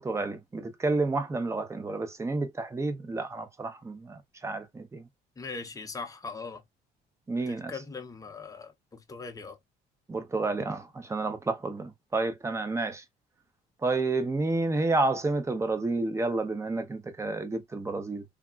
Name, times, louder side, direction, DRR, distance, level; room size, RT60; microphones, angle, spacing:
voice 1, 0.0-5.0 7.3-7.7 10.1-13.0 13.8-18.2, right 3 dB, 15° right, 0.7 m, -30 dB
voice 2, 5.4-6.6 7.5-9.6, left 4 dB, 20° left, 0.7 m, -40 dB
3.5 x 2.2 x 2.3 m
cardioid pair, 110°, 17 cm